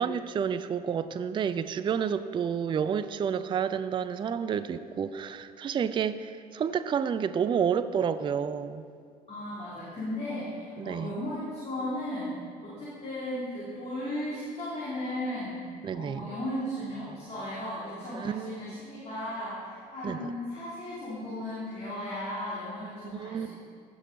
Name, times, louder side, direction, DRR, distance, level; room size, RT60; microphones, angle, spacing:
voice 1, 0.0-8.9 10.8-11.2 15.8-16.3 18.1-18.8 20.0-20.3 23.1-23.5, right 7 dB, 25° right, 13 dB, 0.4 m, -30 dB
voice 2, 9.3-12.3 12.6-15.6 15.9-23.5, left 1 dB, 30° left, -8 dB, 2.9 m, -36 dB
15.0 x 6.3 x 4.0 m, 2.1 s
figure-of-eight pair, 55°, 21 cm